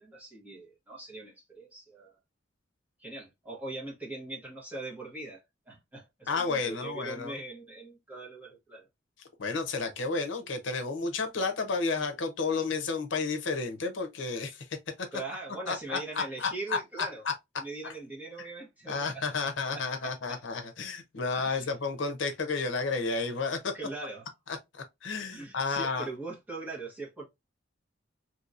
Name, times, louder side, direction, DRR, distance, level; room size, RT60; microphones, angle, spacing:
voice 1, 0.0-2.1 3.0-8.9 15.1-17.2 17.6-20.4 21.3-21.8 23.7-24.3 25.3-27.3, right 2 dB, 10° right, 1.2 m, -41 dB
voice 2, 6.3-7.3 9.4-14.6 15.0-15.1 15.7-16.8 18.9-23.7 24.5-26.1, left 4 dB, 75° left, 0.7 m, -31 dB
3.0 x 2.8 x 2.4 m
head